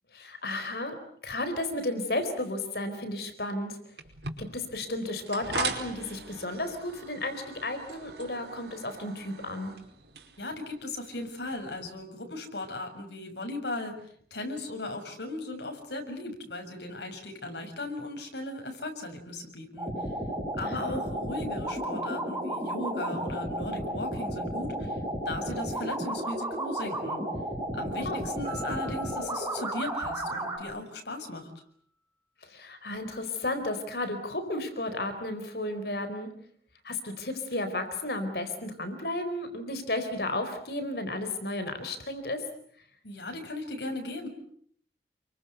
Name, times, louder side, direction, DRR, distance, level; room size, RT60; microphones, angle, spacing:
voice 1, 0.1-0.9 1.2-3.8 4.4-9.7 20.6-21.0 28.0-28.2 32.4-36.3 36.8-42.4, left 2 dB, 65° left, 9 dB, 4.3 m, -33 dB
sound 1, 4.0-11.9, right 4 dB, 75° right, 4.9 m, -41 dB
voice 2, 10.4-13.9 14.3-19.9 20.6-25.0 25.2-27.2 27.7-31.5 43.0-44.3, left 2 dB, 85° left, 4 dB, 6.8 m, -37 dB
sound 2, 19.8-30.6, right 1 dB, 15° right, 5.9 m, -33 dB
Piano, 28.4-31.0, right 1 dB, 30° right, 7.1 m, -47 dB
29.0 x 24.0 x 8.1 m, 0.63 s
head